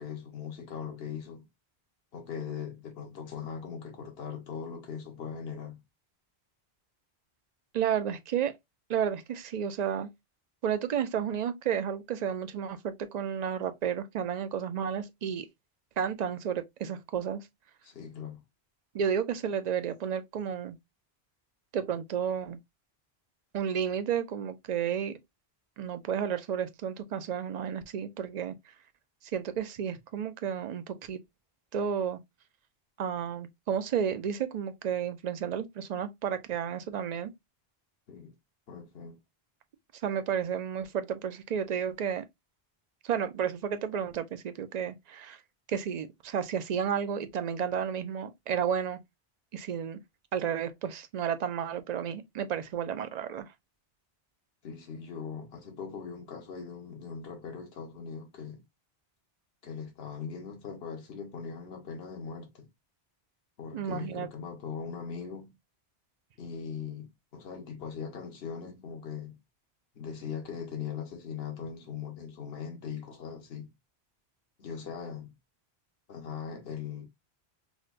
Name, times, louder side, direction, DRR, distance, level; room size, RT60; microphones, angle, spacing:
voice 1, 0.0-1.5 2.1-5.8 17.8-18.4 38.1-38.3 38.7-39.2 54.6-58.6 59.6-62.7 63.6-65.5 66.4-69.4 69.9-73.7 74.6-75.3 76.1-77.0, left 6 dB, 70° left, 1.2 m, -40 dB
voice 2, 7.7-8.5 8.9-10.1 10.6-15.5 16.0-17.4 18.9-20.8 21.7-22.6 23.5-25.1 25.8-28.5 29.3-31.2 31.7-32.2 33.0-37.3 40.0-42.2 43.0-45.4 45.7-49.0 49.5-50.0 50.3-53.5 63.7-64.3, right 8 dB, 55° right, 0.5 m, -32 dB
5.0 x 2.1 x 2.4 m
omnidirectional pair, 1.1 m